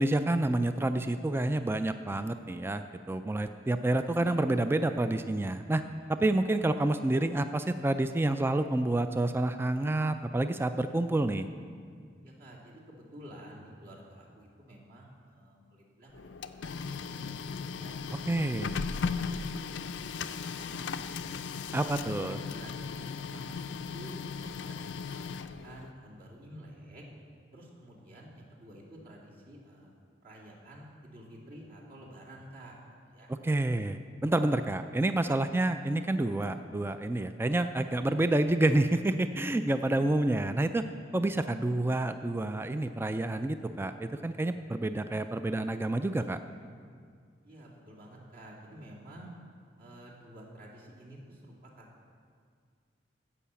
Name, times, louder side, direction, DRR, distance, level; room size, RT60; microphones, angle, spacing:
voice 1, 0.0-5.8 6.1-11.5 18.3-18.7 21.7-22.4 33.3-40.8 41.1-46.4, right 2 dB, 15° right, 9 dB, 0.3 m, -28 dB
voice 2, 12.2-17.3 17.7-20.1 20.4-21.5 22.6-27.0 27.5-29.9 30.2-32.8 33.0-33.3 47.4-49.3 49.8-51.9, right 1 dB, 50° right, -4 dB, 2.5 m, -50 dB
Printer, 16.1-25.9, left 5 dB, 75° left, 0.5 m, -37 dB
15.5 x 5.6 x 7.0 m, 2.1 s
head